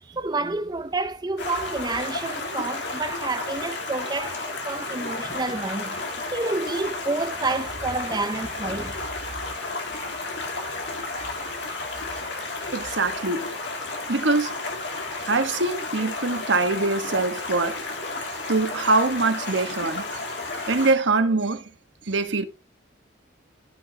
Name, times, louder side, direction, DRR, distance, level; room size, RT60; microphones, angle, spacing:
voice 1, 0.0-6.0 6.3-9.0, right 3 dB, 20° right, 0.6 m, -29 dB
Stream, 1.4-20.9, left 3 dB, 65° left, 2.5 m, -32 dB
voice 2, 12.7-13.5 14.1-14.6 15.3-17.8 18.5-20.1 20.7-21.6 22.1-22.4, right 3 dB, 75° right, 1.3 m, -23 dB
14.5 x 6.4 x 2.8 m
head